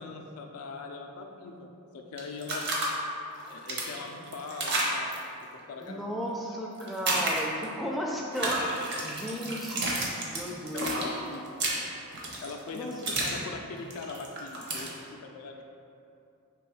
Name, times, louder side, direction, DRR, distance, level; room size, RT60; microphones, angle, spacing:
voice 1, 0.0-1.7 1.9-2.7 3.5-5.1 5.7-6.2 10.7-11.6 12.4-15.6, left 4 dB, 80° left, 3 dB, 0.4 m, -41 dB
sound 1, 2.2-2.9 3.3-5.2 6.8-7.6 8.3-13.4 13.7-14.9, right 2 dB, 50° right, 0.7 m, -31 dB
voice 2, 5.8-10.0 10.3-11.0 12.7-13.0, equal, ahead, -2 dB, 0.3 m, -34 dB
3.4 x 3.0 x 4.7 m, 2.7 s
head